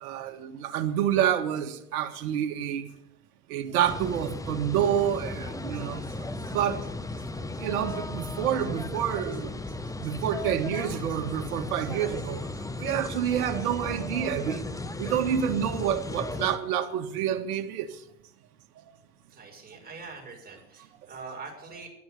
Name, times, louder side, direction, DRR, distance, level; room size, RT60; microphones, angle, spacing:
voice 1, 0.0-2.9 3.5-6.0 6.5-6.8 7.6-9.6 10.0-12.4 12.8-14.7 15.0-17.9, right 10 dB, 65° right, 1.8 m, -28 dB
sound 1, 3.8-16.6, left 2 dB, 5° left, 1.0 m, -35 dB
voice 2, 5.8-6.1 19.3-21.9, right 4 dB, 20° right, 6.6 m, -44 dB
13.0 x 11.0 x 8.4 m
hypercardioid pair, 85°, 46 cm